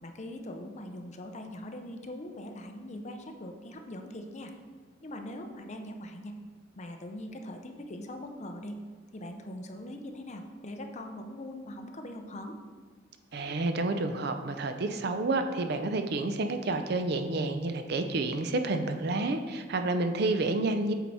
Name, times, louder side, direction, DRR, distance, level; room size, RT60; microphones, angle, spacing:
voice 1, 0.0-4.5 5.0-6.3 6.8-8.8 9.1-12.6, left 1 dB, 40° left, 4 dB, 0.6 m, -41 dB
voice 2, 13.3-20.9, right 2 dB, 60° right, 7 dB, 0.5 m, -29 dB
7.9 x 4.6 x 4.1 m, 1.5 s
head